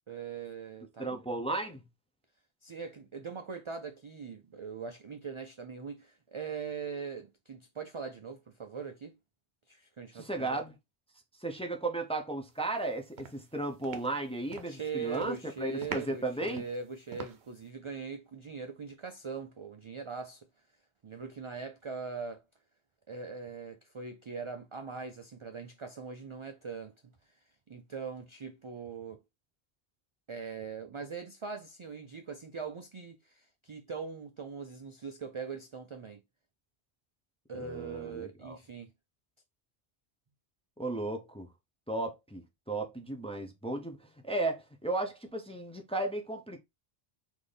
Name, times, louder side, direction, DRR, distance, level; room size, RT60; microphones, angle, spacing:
voice 1, 0.1-1.2 2.6-9.2 9.7-10.6 14.7-20.5 21.0-22.4 23.1-26.9 27.7-29.2 30.3-36.2 37.5-38.9, right 5 dB, 55° right, 0.3 m, -41 dB
voice 2, 1.0-1.8 10.1-10.8 11.4-16.6 37.6-38.6 40.8-41.5 41.9-44.0 44.2-46.6, right 2 dB, 10° left, 0.4 m, -35 dB
sound 1, 12.7-12.9 13.2-14.8 15.1-15.5 15.8-17.7, right 6 dB, 80° right, 0.9 m, -44 dB
4.0 x 2.7 x 3.3 m
omnidirectional pair, 1.1 m